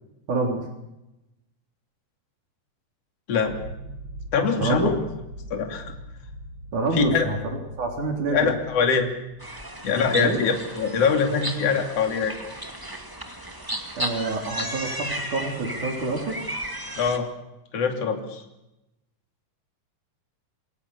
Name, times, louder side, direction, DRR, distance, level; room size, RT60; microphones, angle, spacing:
voice 1, 0.3-0.6 4.6-4.9 6.7-7.4 7.8-8.5 10.2-10.4 14.0-16.3, right 3 dB, 60° right, 2 dB, 4.9 m, -26 dB
sound 1, 3.4-9.9, right 1 dB, 35° right, 8.2 m, -42 dB
voice 2, 4.3-4.9 5.5-5.9 6.9-7.2 8.3-9.1 9.8-12.3 17.0-17.3 17.7-18.4, left 6 dB, 45° left, 4 dB, 3.7 m, -23 dB
sound 2, 9.4-17.2, right 1 dB, 10° right, 1.5 m, -34 dB
27.5 x 25.0 x 7.0 m, 0.94 s
omnidirectional pair, 4.0 m